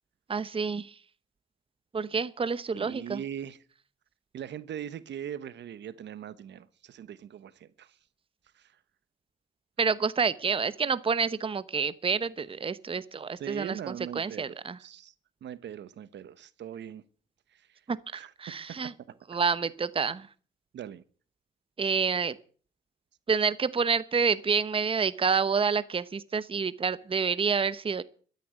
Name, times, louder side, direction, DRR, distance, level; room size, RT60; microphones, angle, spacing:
voice 1, 0.3-0.9 1.9-3.2 9.8-14.8 17.9-18.9 19.3-20.3 21.8-22.3 23.3-28.0, right 5 dB, 25° right, 1.0 m, -28 dB
voice 2, 2.7-3.6 4.3-7.9 8.6-8.7 13.4-15.1 15.4-17.0 17.5-17.6 18.1-18.3 20.7-21.0, right 9 dB, 65° right, 1.1 m, -40 dB
13.0 x 9.9 x 9.4 m
cardioid pair, 90°, 20 cm